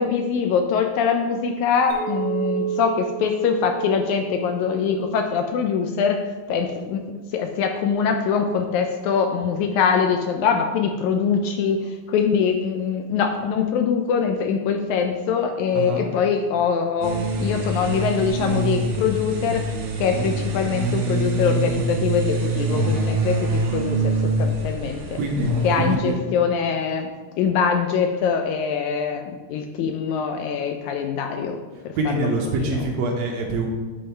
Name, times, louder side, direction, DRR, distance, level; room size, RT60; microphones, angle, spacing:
voice 1, 0.0-6.2 6.5-7.1 7.3-24.1 24.4-25.2 25.6-27.1 27.4-31.6 31.8-32.9, left 6 dB, 80° left, 5 dB, 1.8 m, -23 dB
Chink clink, 1.9-6.4, right 9 dB, 50° left, 2.5 m, -32 dB
sound 1, 17.0-26.0, right 2 dB, 85° right, 2.9 m, -25 dB
voice 2, 25.1-25.5 25.8-26.3 32.0-33.7, right 2 dB, 70° right, 0 dB, 1.9 m, -25 dB
10.5 x 3.8 x 4.4 m, 1.3 s
omnidirectional pair, 3.7 m